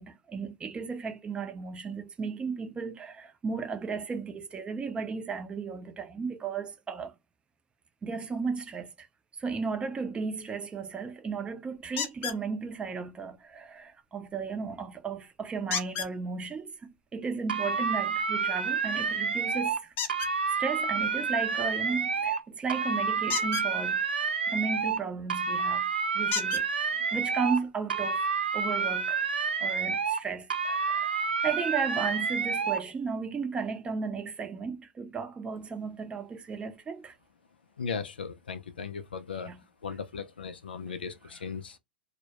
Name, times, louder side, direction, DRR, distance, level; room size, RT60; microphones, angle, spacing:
voice 1, 0.0-7.1 8.0-9.1 9.3-19.9 20.6-24.0 24.5-26.7 27.1-29.2 29.6-37.2 39.3-39.6 41.3-41.4, right 5 dB, 20° right, 0.5 m, -35 dB
sound 1, 12.0-12.4 15.7-16.1 20.0-20.3 23.2-23.7 25.3-25.4 26.3-26.7 27.7-27.8 28.2-28.3, left 7 dB, 40° left, 0.6 m, -32 dB
sound 2, 17.5-19.8 20.1-22.4 22.7-25.0 25.3-27.6 27.9-30.2 30.5-32.8, right 5 dB, 90° right, 0.3 m, -29 dB
voice 2, 37.8-39.5 39.8-41.8, left 5 dB, 85° left, 0.3 m, -37 dB
2.1 x 2.1 x 2.8 m
hypercardioid pair, 95°, 5 cm